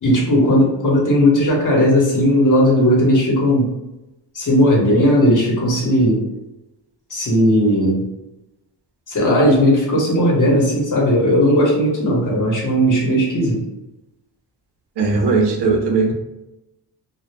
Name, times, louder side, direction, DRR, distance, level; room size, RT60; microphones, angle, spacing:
voice 1, 0.0-3.7 4.3-6.2 7.1-8.0 9.1-13.6, equal, 45° left, -3 dB, 1.0 m, -16 dB
voice 2, 15.0-16.1, right 4 dB, 70° right, 1 dB, 0.7 m, -18 dB
2.2 x 2.0 x 3.2 m, 0.96 s
cardioid pair, 85°, 42 cm